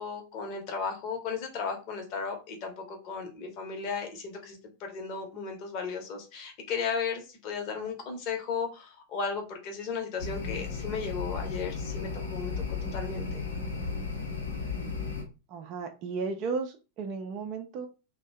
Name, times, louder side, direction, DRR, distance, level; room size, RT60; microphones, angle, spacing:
voice 1, 0.0-12.5 12.9-13.4, left 5 dB, 40° left, 3 dB, 0.9 m, -35 dB
sound 1, 10.2-15.2, left 4 dB, 70° left, 0.8 m, -34 dB
voice 2, 15.5-17.9, right 5 dB, 40° right, 5 dB, 0.5 m, -34 dB
2.6 x 2.2 x 3.3 m, 0.31 s
figure-of-eight pair, 90°, 0 cm